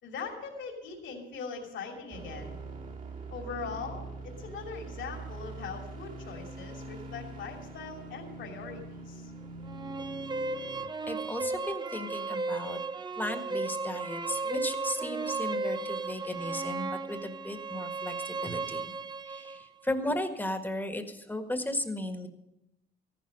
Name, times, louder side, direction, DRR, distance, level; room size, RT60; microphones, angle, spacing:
voice 1, 0.0-2.6 3.3-9.3, left 5 dB, 70° left, 1 dB, 3.0 m, -41 dB
sound 1, 2.1-10.9, right 3 dB, 45° right, 2.5 m, -43 dB
sound 2, 9.7-19.6, right 3 dB, 20° right, 0.7 m, -35 dB
voice 2, 11.1-12.8 13.2-18.9 19.2-22.3, left 1 dB, 10° left, 6 dB, 1.7 m, -35 dB
14.0 x 11.5 x 5.5 m, 0.89 s
cardioid pair, 90°, 20 cm